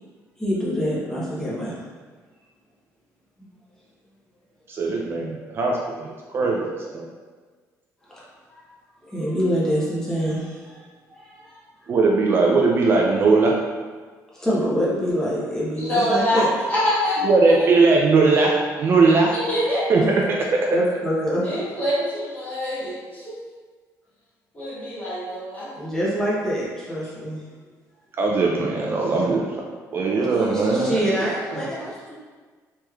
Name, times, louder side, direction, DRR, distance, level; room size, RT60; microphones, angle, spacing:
voice 1, 0.4-1.7 8.1-8.2 8.5-8.7 9.0-10.8 11.1-11.6 14.3-16.5 20.7-21.4 25.8-27.4 30.2-32.1, equal, 10° left, -7 dB, 0.8 m, -25 dB
voice 2, 4.7-7.1 11.9-13.5 17.2-18.5 18.8-19.3 19.9-20.0 28.2-29.6 29.9-31.1, right 3 dB, 35° right, -1 dB, 0.3 m, -19 dB
voice 3, 15.8-16.4 16.7-17.2 19.3-19.8 21.4-23.3 24.5-25.7, left 1 dB, 25° left, -9 dB, 1.2 m, -25 dB
3.3 x 3.0 x 2.3 m, 1.5 s
cardioid pair, 155°, 6 cm